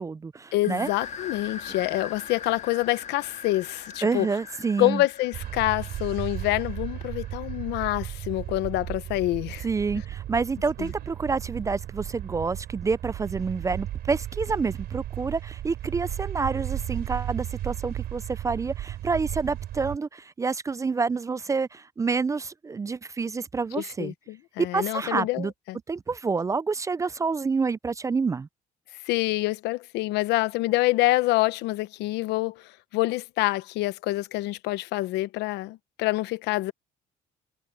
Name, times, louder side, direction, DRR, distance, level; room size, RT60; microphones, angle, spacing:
voice 1, 0.0-0.9 4.0-5.0 9.6-24.1 24.7-25.5 25.9-28.5, right 4 dB, 20° right, 0.3 m, -28 dB
voice 2, 0.5-4.3 4.8-9.7 10.8-10.9 23.8-25.8 29.1-36.7, left 18 dB, 90° left, 0.9 m, -26 dB
sound 1, 0.6-8.1, left 6 dB, 40° left, 1.8 m, -42 dB
sound 2, 5.3-20.0, right 13 dB, 70° right, 4.1 m, -35 dB
cardioid pair, 110°, 17 cm